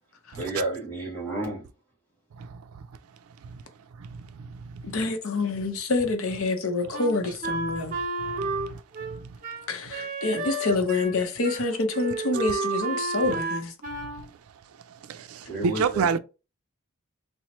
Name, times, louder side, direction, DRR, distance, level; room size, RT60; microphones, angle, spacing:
voice 1, 0.3-1.7 10.5-10.6 15.5-16.1, right 2 dB, 10° left, 1.6 m, -31 dB
voice 2, 2.4-2.8 3.4-3.6 4.0-5.0 7.7-9.4 14.2-14.3 14.9-16.2, right 5 dB, 90° right, 0.4 m, -32 dB
voice 3, 4.8-7.9 9.7-13.7, left 3 dB, 75° left, 0.7 m, -27 dB
Wind instrument woodwind instrument, 6.9-11.2 11.4-11.6 11.9-14.2, right 3 dB, 40° right, 0.6 m, -31 dB
4.2 x 2.0 x 3.0 m
head